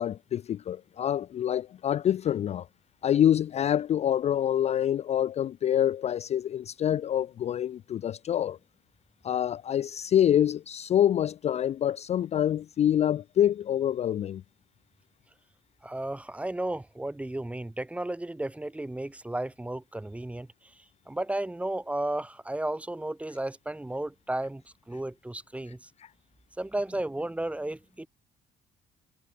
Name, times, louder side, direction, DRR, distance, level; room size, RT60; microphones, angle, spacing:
voice 1, 0.0-2.7 3.0-8.6 9.2-14.4, left 10 dB, 40° left, 0.4 m, -26 dB
voice 2, 15.8-20.5 21.1-24.6 24.9-25.9 26.6-28.1, right 1 dB, 10° right, 1.0 m, -33 dB
cardioid pair, 110°, 17 cm